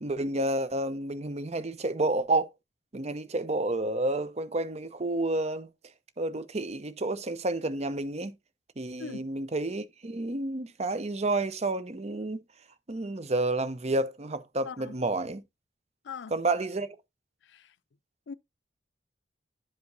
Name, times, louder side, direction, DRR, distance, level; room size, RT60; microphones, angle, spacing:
voice 1, 0.0-2.5 2.9-5.7 6.2-8.3 8.8-12.4 12.9-15.4 16.3-16.9, right 2 dB, 35° right, 0.8 m, -30 dB
voice 2, 17.4-17.7 18.3-18.4, left 6 dB, 80° left, 0.4 m, -41 dB
11.5 x 5.0 x 2.6 m
head